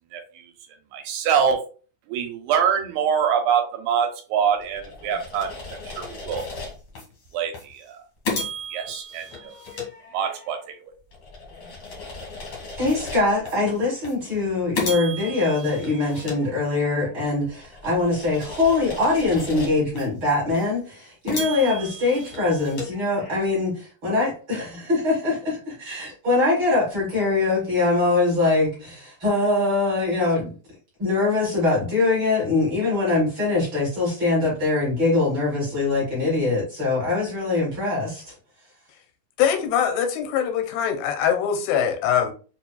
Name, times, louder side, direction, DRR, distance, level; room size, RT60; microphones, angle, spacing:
voice 1, 0.1-0.4 0.9-1.6 2.1-5.5 5.9-6.4 7.3-8.0 8.7-9.6 10.1-10.9, right 7 dB, 80° right, 2.7 m, -24 dB
sound 1, 4.6-7.0 7.5-7.7 8.2-10.6 11.1-13.5 14.0-14.2 14.7-17.1 17.6-20.0 20.5-20.6 21.3-23.6, left 2 dB, 70° left, 1.1 m, -35 dB
voice 2, 12.8-23.7 24.0-30.5 31.0-38.3, left 3 dB, 45° right, 1.7 m, -23 dB
voice 3, 39.4-42.3, left 8 dB, 85° left, 2.7 m, -22 dB
6.9 x 2.5 x 2.2 m
omnidirectional pair, 4.6 m